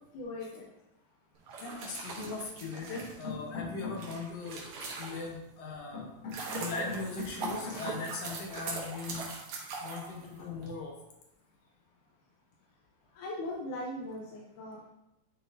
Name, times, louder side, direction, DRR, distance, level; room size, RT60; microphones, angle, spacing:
voice 1, 0.1-0.7 13.1-14.9, left 1 dB, 90° left, -3 dB, 2.3 m, -39 dB
sound 1, 1.4-5.5 6.0-10.7, right 4 dB, 70° right, 2.4 m, -41 dB
voice 2, 1.6-9.3 9.8-10.9, left 3 dB, 60° left, 0 dB, 2.0 m, -39 dB
10.0 x 4.6 x 2.7 m, 0.90 s
omnidirectional pair, 3.5 m